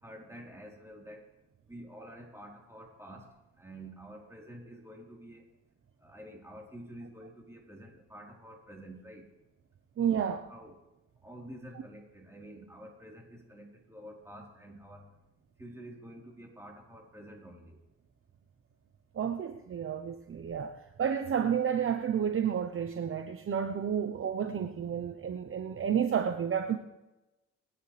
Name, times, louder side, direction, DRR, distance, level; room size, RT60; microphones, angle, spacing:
voice 1, 0.0-1.2 1.7-3.3 3.6-5.4 6.0-9.3 10.1-10.8 11.2-15.1 15.6-17.8, right 1 dB, 10° right, -2 dB, 4.3 m, -49 dB
voice 2, 10.0-10.4 19.1-26.8, right 8 dB, 45° right, 6 dB, 1.0 m, -31 dB
25.0 x 10.0 x 3.5 m, 1.0 s
cardioid pair, 90°, 30 cm